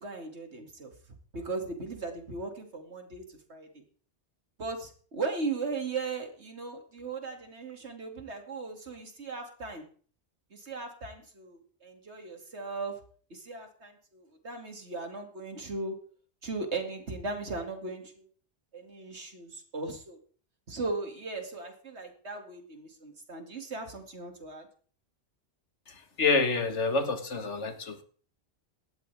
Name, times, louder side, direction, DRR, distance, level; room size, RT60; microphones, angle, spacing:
voice 1, 0.0-0.9 1.3-3.8 4.6-9.9 10.5-13.0 13.3-16.0 16.4-18.3 18.7-20.2 20.7-24.7, right 3 dB, 70° right, 4 dB, 2.8 m, -37 dB
voice 2, 25.9-28.0, left 4 dB, 80° left, 8 dB, 1.9 m, -28 dB
18.0 x 13.0 x 3.5 m, 0.44 s
omnidirectional pair, 1.2 m